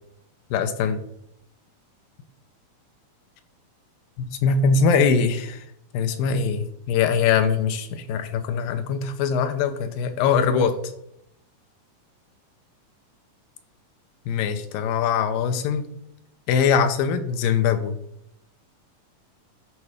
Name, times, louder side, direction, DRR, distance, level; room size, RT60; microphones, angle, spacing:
voice 1, 0.5-1.0 4.2-5.6 5.9-10.8 14.3-15.9 16.5-18.0, left 6 dB, 80° left, 9 dB, 2.5 m, -22 dB
11.0 x 4.2 x 4.9 m, 0.75 s
omnidirectional pair, 4.0 m